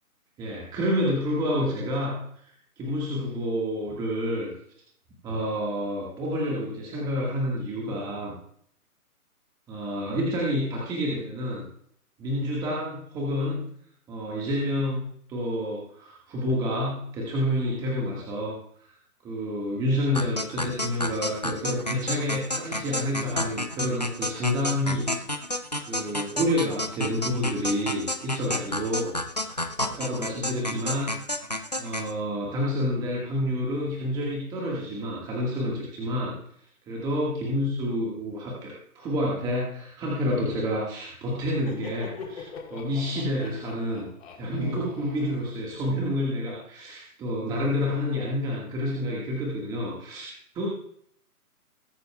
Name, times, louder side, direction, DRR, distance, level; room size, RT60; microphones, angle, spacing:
voice 1, 0.4-4.5 5.2-8.3 9.7-11.6 12.2-13.6 14.1-15.0 15.3-18.6 19.2-25.1 25.9-29.1 29.5-29.6 29.8-31.2 31.8-36.3 36.9-44.1 44.3-50.7, equal, 10° right, -4 dB, 1.6 m, -29 dB
sound 1, 20.1-32.1, left 1 dB, 30° left, 0.4 m, -31 dB
Laughter, 41.4-46.1, left 5 dB, 55° left, 3.4 m, -43 dB
21.5 x 10.5 x 2.3 m, 0.66 s
hypercardioid pair, 155°, 45 cm